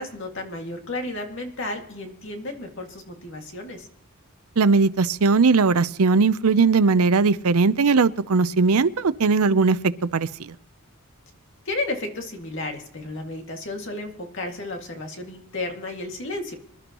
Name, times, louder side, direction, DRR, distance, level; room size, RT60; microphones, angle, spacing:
voice 1, 0.0-3.9 11.7-16.5, left 2 dB, 55° left, 2 dB, 2.2 m, -33 dB
voice 2, 4.6-9.8 10.1-10.5, right 4 dB, 80° right, 14 dB, 0.6 m, -19 dB
26.0 x 11.5 x 3.0 m, 0.72 s
head